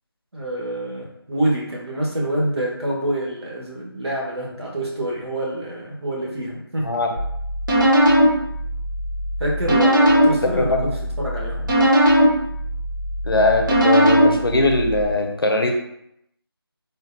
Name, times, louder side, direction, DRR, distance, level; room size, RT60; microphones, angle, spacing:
voice 1, 0.3-6.9 9.4-10.9 11.2-11.7, right 1 dB, 80° right, -3 dB, 1.2 m, -26 dB
voice 2, 6.8-7.1 10.4-11.0 13.2-15.7, left 2 dB, 65° left, 3 dB, 0.6 m, -20 dB
sound 1, 7.2-15.0, equal, 50° right, 0.8 m, -19 dB
3.8 x 2.1 x 2.6 m, 0.76 s
figure-of-eight pair, 175°, 13 cm